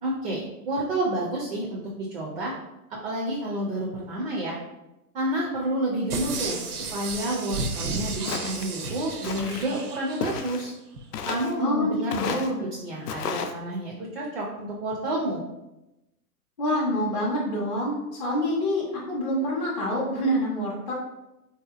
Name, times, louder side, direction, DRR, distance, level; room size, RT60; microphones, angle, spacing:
voice 1, 0.0-2.5 3.0-4.6 5.1-6.6 6.9-10.7 11.3-12.3 12.8-15.4, right 1 dB, 40° right, -3 dB, 0.4 m, -29 dB
sound 1, 6.1-10.5 11.0-11.1, right 3 dB, 75° right, 0.7 m, -33 dB
Walk footsteps, 8.3-8.7 9.2-9.7 10.2-10.7 11.1-11.6 12.1-12.5 13.1-13.5, left 6 dB, 85° left, 0.5 m, -32 dB
voice 2, 11.6-12.7 16.6-20.9, equal, 30° left, -7 dB, 0.4 m, -27 dB
3.3 x 2.8 x 2.3 m, 0.95 s
hypercardioid pair, 165°, 46 cm